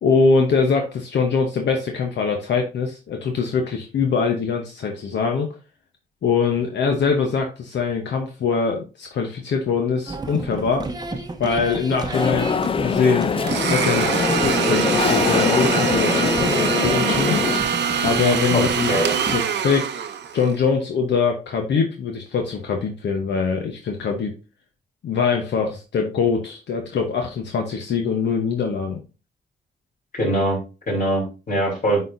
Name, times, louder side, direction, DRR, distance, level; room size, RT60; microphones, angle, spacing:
voice 1, 0.0-5.5 6.2-10.9 11.4-13.4 13.7-17.4 18.0-19.9 20.3-24.3 25.0-29.0, left 5 dB, 75° left, 3 dB, 1.0 m, -23 dB
sound 1, 10.1-19.4, right 2 dB, 20° right, 0.8 m, -31 dB
sound 2, 12.1-17.6, left 6 dB, 30° left, 0.4 m, -23 dB
Domestic sounds home sounds, 13.5-20.5, right 7 dB, 75° right, 0.8 m, -23 dB
voice 2, 18.5-19.1 30.1-30.6 30.9-32.0, right 1 dB, 50° left, -2 dB, 3.7 m, -22 dB
9.1 x 4.2 x 2.6 m, 0.30 s
cardioid pair, 100°, 18 cm